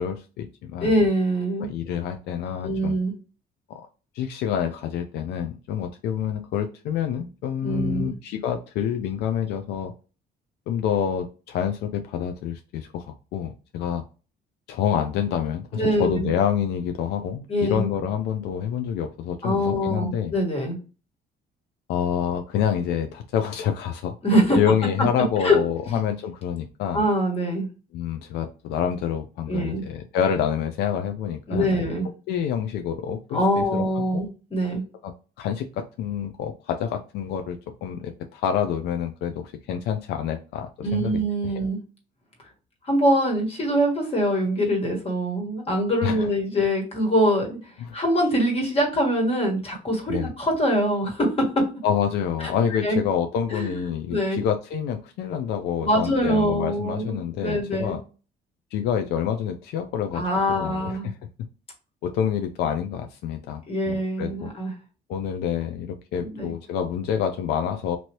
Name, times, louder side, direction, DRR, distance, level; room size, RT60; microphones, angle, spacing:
voice 1, 0.0-0.9 1.6-3.0 3.7-3.9 4.1-9.9 10.7-14.0 14.7-20.3 21.9-24.1 24.6-27.0 27.9-33.8 34.1-34.3 35.0-35.1 35.4-41.2 46.0-46.3 47.8-48.0 50.1-50.3 51.8-58.0 58.7-61.1 62.0-64.5 65.1-68.0, left 8 dB, 80° left, 6 dB, 0.4 m, -27 dB
voice 2, 0.8-1.7 2.6-3.1 7.6-8.1 15.7-16.3 17.5-17.9 19.4-20.8 24.2-24.6 25.4-25.6 25.8-26.0 26.9-27.7 29.5-29.8 31.5-32.1 33.3-34.8 40.8-41.8 42.8-51.6 52.4-52.5 52.8-53.0 53.5-54.4 55.8-58.0 60.1-61.1 63.7-64.7 66.4-66.5, equal, 35° left, 1 dB, 1.5 m, -24 dB
2.9 x 2.7 x 3.0 m, 0.34 s
cardioid pair, 110°, 17 cm